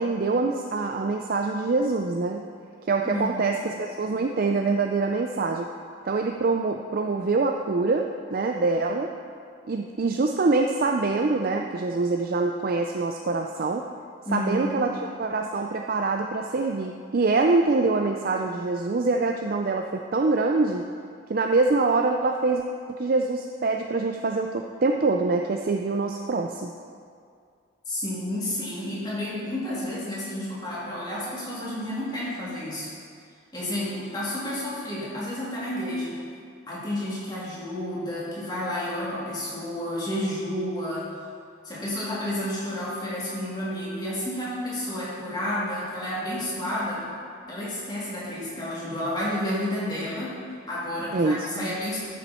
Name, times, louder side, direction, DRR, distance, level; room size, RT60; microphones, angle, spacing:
voice 1, 0.0-2.4 2.9-5.7 6.1-9.1 9.7-13.8 14.3-20.9 21.3-26.7 51.1-51.7, right 3 dB, 45° right, 3 dB, 0.4 m, -25 dB
voice 2, 3.0-3.6 14.2-14.9 27.9-32.9 33.5-36.2 36.7-41.1 41.6-47.1 47.5-50.4 50.7-52.0, left 1 dB, 20° left, -8 dB, 2.9 m, -31 dB
13.5 x 7.1 x 4.3 m, 2.2 s
head